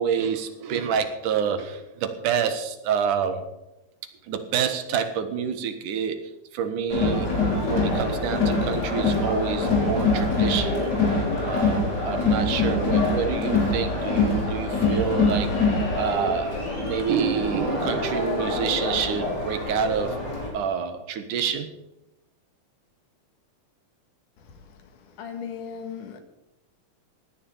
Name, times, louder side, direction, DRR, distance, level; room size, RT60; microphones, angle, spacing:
voice 1, 0.0-3.5 4.2-7.3 7.6-15.5 15.9-20.2 20.5-21.8, right 7 dB, 85° right, 2.9 m, -28 dB
Crowd, 6.9-20.5, left 3 dB, 30° left, 4.3 m, -24 dB
voice 2, 25.2-26.2, left 7 dB, 85° left, 3.3 m, -36 dB
17.0 x 10.5 x 5.6 m
omnidirectional pair, 3.5 m